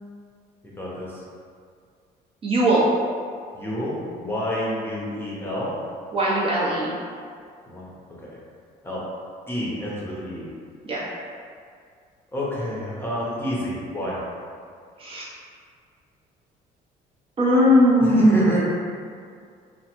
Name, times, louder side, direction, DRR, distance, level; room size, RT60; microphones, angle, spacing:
voice 1, 0.8-1.2 3.5-5.7 7.7-7.9 8.2-8.4 8.8-9.0 9.5-10.5 12.3-14.2 18.0-18.6, equal, 15° left, -6 dB, 0.7 m, -29 dB
voice 2, 2.4-2.9 6.1-6.9 10.9-11.1 15.0-15.2 17.4-18.6, equal, 35° right, -6 dB, 0.6 m, -19 dB
2.9 x 2.0 x 2.9 m, 2.2 s
cardioid pair, 110°, 17 cm